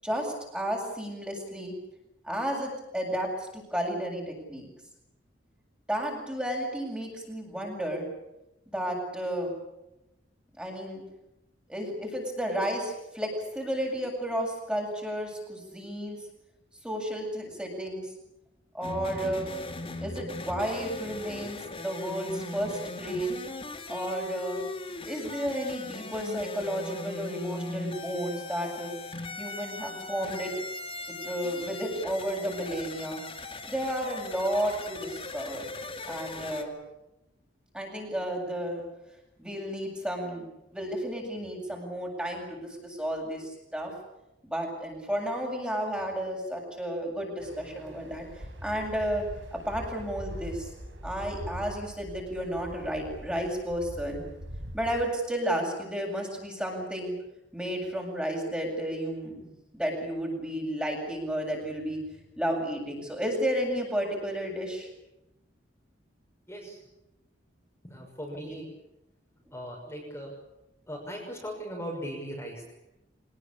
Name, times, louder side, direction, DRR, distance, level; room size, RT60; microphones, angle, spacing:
voice 1, 0.0-1.7 2.2-4.7 5.9-8.1 8.7-9.5 10.6-11.0 11.7-16.2 16.8-18.1 18.7-19.5 20.0-23.4 23.9-24.6 25.1-28.9 29.4-30.5 31.1-33.2 33.7-35.7 36.1-36.7 37.7-38.8 39.4-43.9 44.4-48.3 48.6-49.2 49.5-50.7 51.0-54.2 54.7-57.1 57.5-62.0 62.4-64.9 68.5-68.7, equal, 5° right, 0 dB, 7.9 m, -32 dB
sound 1, 18.8-36.6, left 2 dB, 30° left, 2.5 m, -39 dB
sound 2, 47.4-55.0, equal, 80° right, 5.3 m, -42 dB
voice 2, 66.5-66.8 67.8-68.7 69.5-70.3 70.9-72.8, equal, 15° left, -2 dB, 6.4 m, -38 dB
25.5 x 20.5 x 8.7 m, 0.92 s
head